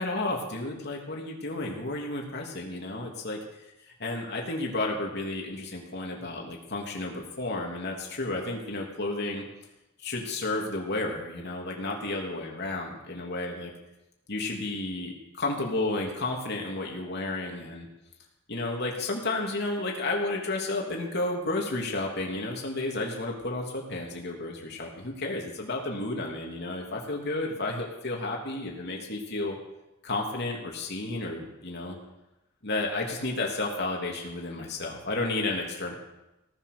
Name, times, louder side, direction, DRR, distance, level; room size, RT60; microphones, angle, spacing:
voice 1, 0.0-3.4 3.9-9.4 10.0-13.7 14.3-17.9 18.5-29.6 30.0-32.0 32.6-35.9, left 2 dB, 55° left, -1 dB, 3.2 m, -32 dB
18.0 x 10.5 x 6.9 m, 0.96 s
head